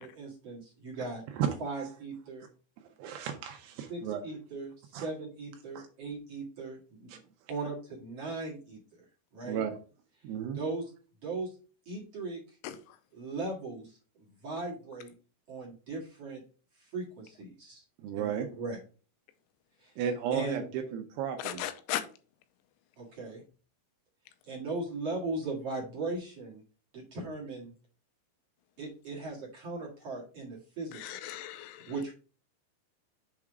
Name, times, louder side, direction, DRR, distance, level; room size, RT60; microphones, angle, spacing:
voice 1, 0.0-1.2 1.6-2.5 3.9-7.1 7.5-9.0 9.3-9.6 10.5-10.9 11.2-11.5 11.9-12.4 13.1-15.1 15.5-16.4 16.8-17.8 18.2-18.3 18.6-18.8 19.8-19.9 20.3-20.7 23.0-23.4 24.5-26.6 26.9-27.7 28.8-31.2 31.9-32.1, right 3 dB, 55° right, -4 dB, 1.8 m, -38 dB
voice 2, 3.0-4.2 4.9-5.1 5.8-5.9 7.1-7.2 9.4-9.8 10.2-10.6 18.0-18.5 20.0-21.7, right 8 dB, 80° right, 5 dB, 2.3 m, -33 dB
voice 3, 21.4-22.0 31.0-31.9, left 12 dB, 90° left, 9 dB, 3.2 m, -36 dB
7.3 x 3.6 x 4.7 m, 0.37 s
omnidirectional pair, 5.6 m